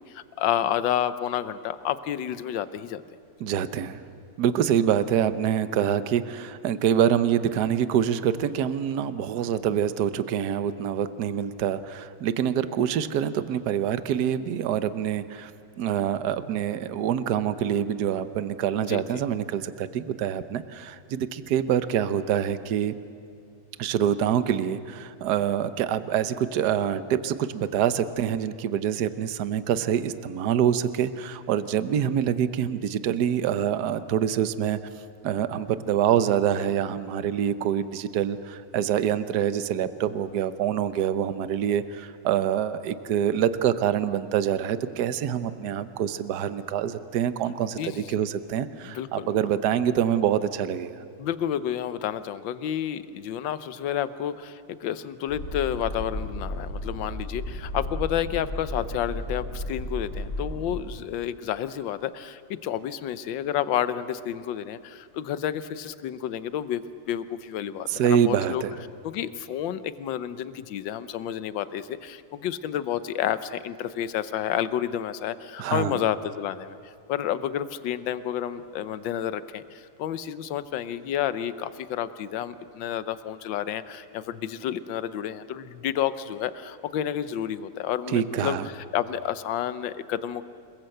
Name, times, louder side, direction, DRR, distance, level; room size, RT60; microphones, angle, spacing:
voice 1, 0.0-3.0 18.7-19.0 47.8-48.1 48.8-49.3 51.2-66.8 67.1-68.6 69.0-76.8 77.1-90.4, left 10 dB, 65° left, 13 dB, 1.5 m, -30 dB
voice 2, 3.4-4.0 4.4-15.5 15.8-22.9 23.8-34.8 35.2-51.0 67.9-68.7 75.6-76.0 88.1-88.7, right 9 dB, 60° right, 12 dB, 1.2 m, -25 dB
sound 1, 55.3-60.8, left 1 dB, 40° left, 3.2 m, -34 dB
28.0 x 21.5 x 7.9 m, 2.4 s
omnidirectional pair, 2.4 m